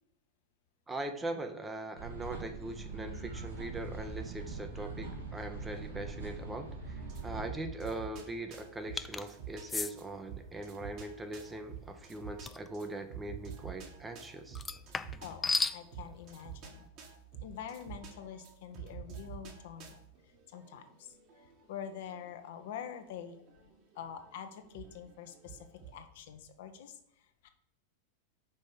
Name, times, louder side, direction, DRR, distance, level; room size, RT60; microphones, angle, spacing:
voice 1, 0.9-14.6, right 2 dB, 10° right, 6 dB, 0.8 m, -41 dB
sound 1, 2.0-7.5, right 3 dB, 80° right, 2.4 m, -42 dB
sound 2, 7.0-26.0, right 8 dB, 40° right, 1.7 m, -49 dB
sound 3, 9.0-9.2 9.7-9.9 12.4-12.7 14.5-15.8, left 4 dB, 15° left, 0.4 m, -33 dB
voice 2, 15.2-16.8 17.4-23.4 23.9-27.5, left 8 dB, 55° left, 8 dB, 0.8 m, -46 dB
5.5 x 5.2 x 6.3 m, 0.79 s
figure-of-eight pair, 90°, 0 cm